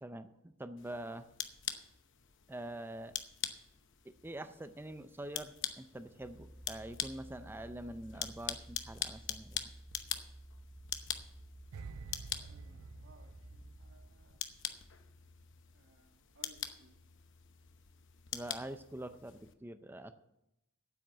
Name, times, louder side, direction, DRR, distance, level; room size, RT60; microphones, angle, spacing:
voice 1, 0.0-1.3 2.5-3.1 4.0-9.7 18.3-20.1, right 1 dB, 10° right, 11 dB, 0.5 m, -45 dB
sound 1, 0.8-19.5, left 10 dB, 55° left, 0.9 m, -44 dB
sound 2, 6.2-14.1, right 1 dB, 40° right, 3.6 m, -54 dB
sound 3, 11.7-14.9 15.2-15.4, right 5 dB, 80° right, 0.5 m, -51 dB
voice 2, 12.3-14.5 15.7-17.0, right 2 dB, 55° right, 4 dB, 1.7 m, -64 dB
9.0 x 8.5 x 9.1 m, 0.88 s
head